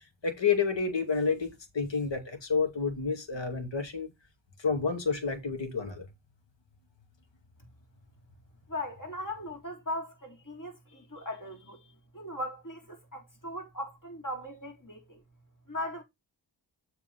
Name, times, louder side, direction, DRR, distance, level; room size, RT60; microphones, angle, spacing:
voice 1, 0.2-4.1 4.6-6.1, left 5 dB, 75° left, 2.3 m, -29 dB
voice 2, 8.7-11.8 12.1-15.2 15.7-16.0, left 1 dB, 45° left, 3.4 m, -38 dB
7.4 x 4.2 x 5.7 m
wide cardioid pair, 80°, 44 cm